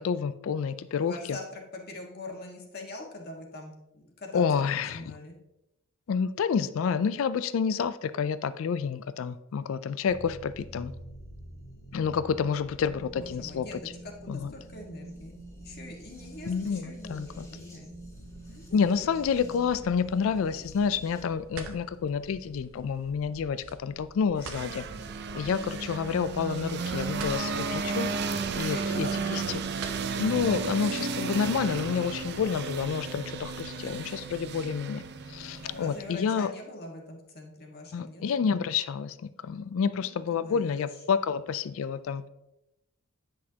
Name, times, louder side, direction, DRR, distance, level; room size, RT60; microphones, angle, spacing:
voice 1, 0.0-1.1 4.3-5.1 6.1-10.9 11.9-13.7 14.3-14.5 16.5-17.5 18.7-24.8 25.3-28.1 28.5-29.6 30.2-35.0 35.3-36.5 37.9-39.1 39.4-42.3, left 6 dB, 70° left, 13 dB, 0.3 m, -29 dB
voice 2, 1.0-5.4 13.1-15.3 15.6-17.9 18.5-18.7 28.6-29.4 35.5-38.2 39.9-40.9, left 2 dB, 50° left, 0 dB, 1.6 m, -43 dB
sound 1, 10.1-21.2, right 1 dB, 15° left, 2.0 m, -46 dB
sound 2, 18.1-30.4, right 3 dB, 75° right, 0.8 m, -47 dB
sound 3, 24.4-36.2, right 4 dB, 55° right, 0.5 m, -33 dB
9.7 x 6.2 x 2.8 m, 0.88 s
head